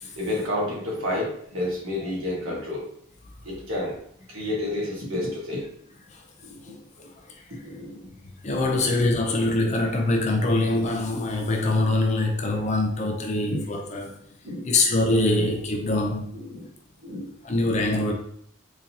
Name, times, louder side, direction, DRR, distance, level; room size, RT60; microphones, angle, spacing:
voice 1, 0.2-2.8 3.4-4.0 4.3-5.6 6.4-6.8 7.6-8.1 8.5-8.6 13.4-13.6 13.9-14.0 14.4-14.7 15.3-15.5 16.5-16.7 17.0-17.3, left 1 dB, 80° right, 1.5 m, -30 dB
voice 2, 8.4-14.1 14.6-16.3 17.4-18.1, left 2 dB, 35° left, 0.5 m, -24 dB
3.8 x 2.7 x 2.8 m
head